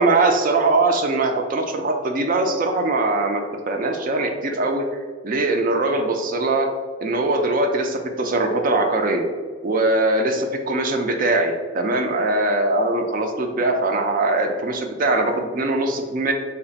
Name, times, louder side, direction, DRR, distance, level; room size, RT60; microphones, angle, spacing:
voice 1, 0.0-4.9 5.2-6.7 7.0-9.3 9.6-16.3, right 2 dB, 45° right, 4 dB, 0.4 m, -21 dB
3.3 x 2.4 x 3.9 m, 1.5 s
head